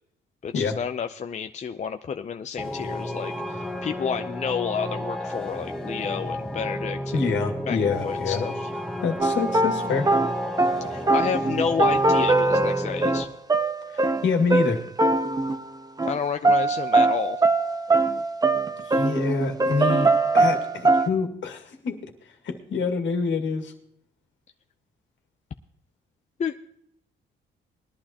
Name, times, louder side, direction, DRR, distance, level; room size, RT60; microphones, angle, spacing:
voice 1, 0.4-7.2 7.7-8.7 10.9-13.3 16.0-17.4 26.4-26.6, left 6 dB, 35° left, 7 dB, 0.6 m, -30 dB
sound 1, 2.6-13.2, left 1 dB, 5° left, 1.3 m, -32 dB
voice 2, 7.1-8.4 9.0-10.1 13.9-14.8 18.8-22.1 22.4-23.7, left 5 dB, 70° left, 4 dB, 2.0 m, -26 dB
sound 2, 9.2-15.7 16.0-16.2 16.4-21.1, right 3 dB, 20° right, 0.8 m, -22 dB
20.5 x 11.5 x 2.9 m, 0.72 s
cardioid pair, 90°, 20 cm